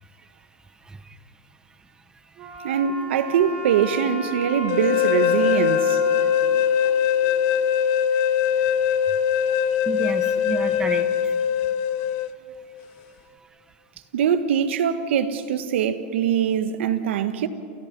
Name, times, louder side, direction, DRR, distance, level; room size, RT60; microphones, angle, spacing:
voice 1, 0.8-1.2 2.2-2.6 6.2-7.2 8.0-11.6, right 3 dB, 10° right, 1.3 m, -36 dB
Wind instrument woodwind instrument, 2.4-7.5, left 1 dB, 40° right, 7.5 m, -35 dB
voice 2, 2.6-6.0 14.1-17.5, right 8 dB, 80° right, 1.6 m, -23 dB
sound 1, 4.7-12.3, left 9 dB, 50° left, 1.1 m, -21 dB
29.5 x 29.5 x 5.5 m
supercardioid pair, 140°, 6 cm